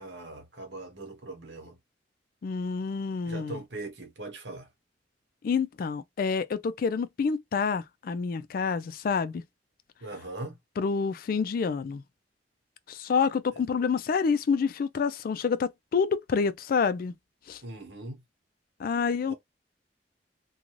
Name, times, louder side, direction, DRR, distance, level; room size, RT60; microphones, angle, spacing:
voice 1, 0.0-1.8 3.3-4.7 10.0-10.6 17.6-18.2 19.3-19.4, right 2 dB, 70° right, 1.1 m, -40 dB
voice 2, 2.4-3.6 5.4-9.4 10.8-12.0 12.9-17.1 17.5-17.6 18.8-19.3, left 5 dB, 50° left, 0.3 m, -28 dB
2.5 x 2.3 x 3.0 m
head